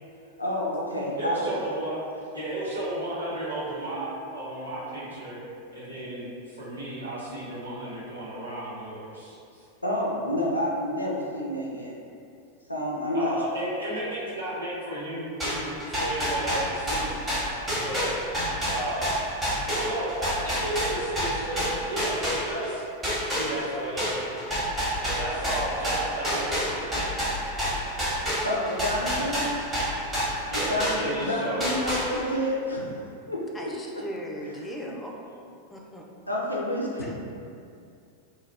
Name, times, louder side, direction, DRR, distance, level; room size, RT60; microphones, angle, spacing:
voice 1, 0.4-1.5 9.8-11.9 12.7-13.4 28.4-29.5 30.7-32.9 33.3-34.1 34.5-34.6 36.3-37.1, left 1 dB, 85° left, -4 dB, 0.3 m, -29 dB
voice 2, 1.2-2.0 2.3-5.4 5.7-9.7 13.1-17.2 17.7-18.2 18.7-19.2 19.7-22.9 23.3-24.5 25.0-27.0 30.5-31.8, right 1 dB, 85° right, -10 dB, 0.8 m, -33 dB
sound 1, 15.4-22.7 23.0-31.3 31.6-32.4, equal, 15° right, 1.0 m, -28 dB
voice 3, 33.5-35.2 35.7-36.0 37.0-37.1, equal, 10° left, -1 dB, 0.4 m, -38 dB
2.3 x 2.1 x 3.3 m, 2.5 s
figure-of-eight pair, 90°, 0 cm